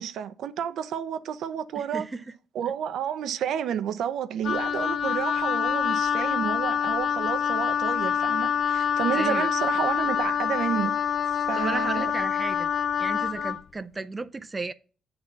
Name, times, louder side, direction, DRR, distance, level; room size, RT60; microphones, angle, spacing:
voice 1, 0.0-2.1 2.5-11.0 11.5-12.1, right 9 dB, 75° right, 0.6 m, -30 dB
voice 2, 1.8-2.2 6.2-6.3 9.1-9.5 11.6-12.7 13.0-14.7, right 3 dB, 25° right, 0.4 m, -34 dB
Wind instrument woodwind instrument, 4.4-13.6, left 8 dB, 60° left, 0.3 m, -26 dB
8.6 x 4.1 x 5.7 m
cardioid pair, 90°, 0 cm